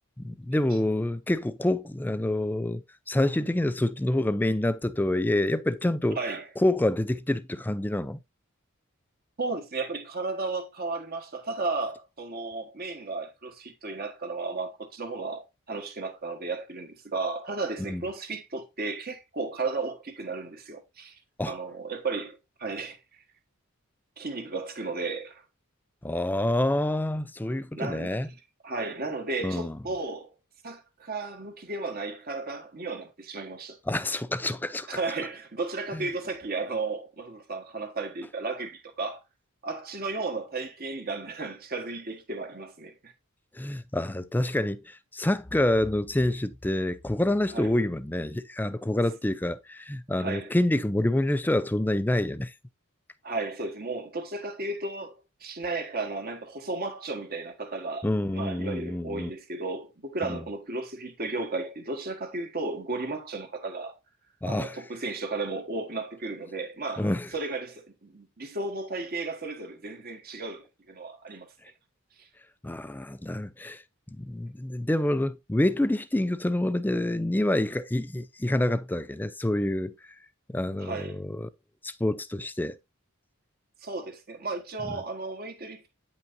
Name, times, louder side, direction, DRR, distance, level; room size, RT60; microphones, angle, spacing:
voice 1, 0.2-6.2 6.6-8.2 17.9-18.0 21.4-21.5 26.0-28.3 29.4-29.8 33.9-34.9 35.9-36.1 43.5-52.5 58.0-59.3 60.2-60.4 64.4-64.8 67.0-67.3 72.6-73.8 74.2-79.9 80.5-81.5 81.8-82.8, left 1 dB, 10° left, 0.4 m, -27 dB
voice 2, 6.1-6.5 9.4-21.2 21.5-23.0 24.2-25.4 27.7-28.2 28.6-30.3 30.6-33.8 34.9-39.2 39.6-43.1 47.5-47.7 50.1-50.5 53.2-64.0 64.4-71.5 72.2-72.3 80.8-81.2 83.8-85.8, right 3 dB, 45° right, 1.4 m, -34 dB
9.1 x 5.9 x 2.6 m
head